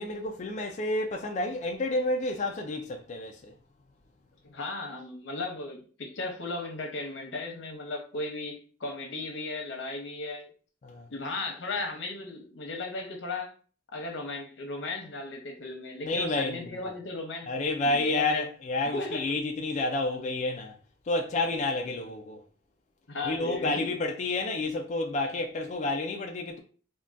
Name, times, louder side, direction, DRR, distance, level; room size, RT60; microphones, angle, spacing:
voice 1, 0.0-3.5 10.8-11.1 16.0-16.7 17.5-20.7 21.1-22.4 23.2-26.6, left 2 dB, 40° left, 0.3 m, -30 dB
voice 2, 4.4-10.5 11.1-13.5 13.9-18.5 18.9-19.3 23.1-24.0, left 2 dB, 90° left, 0.8 m, -36 dB
3.5 x 2.2 x 2.5 m
head